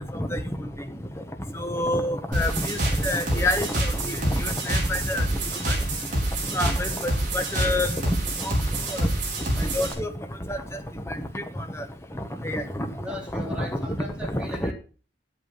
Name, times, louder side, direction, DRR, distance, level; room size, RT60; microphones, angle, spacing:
voice 1, 1.6-2.8 3.0-3.7 4.4-5.2 5.7-5.8 6.5-6.9 7.3-7.9 9.7-10.1 12.4-12.6 13.3-13.4 14.3-14.5, left 1 dB, 15° left, 7 dB, 1.1 m, -26 dB
sound 1, 2.3-9.9, right 1 dB, 45° right, 3.9 m, -27 dB
voice 2, 13.0-14.7, equal, 5° right, -2 dB, 3.2 m, -37 dB
9.7 x 8.4 x 5.7 m, 0.39 s
head